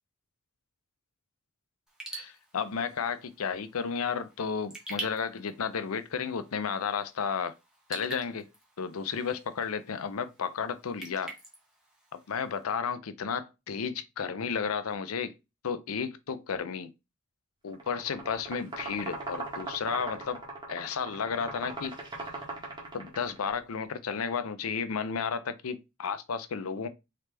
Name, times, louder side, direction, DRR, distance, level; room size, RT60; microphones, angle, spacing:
Raindrop / Drip, 1.9-12.6, right 2 dB, 5° right, 1.2 m, -47 dB
voice 1, 2.1-7.5 7.9-8.5 8.8-11.3 12.1-15.3 15.6-16.9 17.6-20.4 20.7-22.0 22.9-26.9, left 6 dB, 85° left, 0.6 m, -33 dB
sound 1, 17.7-23.5, right 3 dB, 20° right, 1.4 m, -40 dB
3.8 x 3.4 x 3.3 m
head